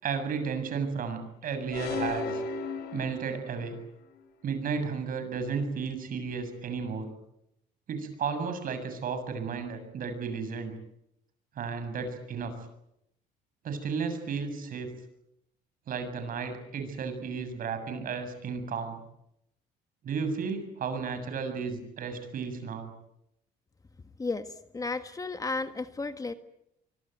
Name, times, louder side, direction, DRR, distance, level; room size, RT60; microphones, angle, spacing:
voice 1, 0.0-2.4 2.9-3.8 4.4-7.1 7.9-10.7 11.6-12.5 13.6-14.9 15.9-19.0 20.0-22.9, right 5 dB, 55° right, 9 dB, 7.2 m, -33 dB
sound 1, 1.7-3.7, left 4 dB, 70° left, 5.5 m, -34 dB
voice 2, 24.7-26.3, left 3 dB, 20° left, 9 dB, 1.5 m, -33 dB
24.5 x 24.0 x 9.2 m, 0.81 s
cardioid pair, 110°, 17 cm